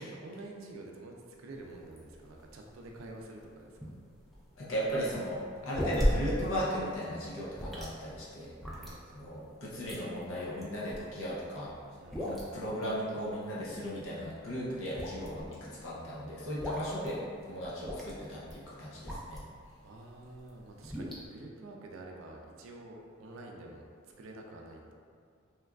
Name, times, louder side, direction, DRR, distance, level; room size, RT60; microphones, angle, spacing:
voice 1, 0.0-3.9 8.7-9.0 12.0-12.5 19.8-23.9 24.2-24.9, right 2 dB, 70° right, 0 dB, 0.4 m, -48 dB
sound 1, 1.5-19.6 20.1-21.2, equal, ahead, 0.3 m, -38 dB
voice 2, 4.6-8.5 9.1-11.7 12.2-19.4, equal, 65° left, -7 dB, 0.6 m, -36 dB
2.9 x 2.4 x 2.3 m, 2.2 s
head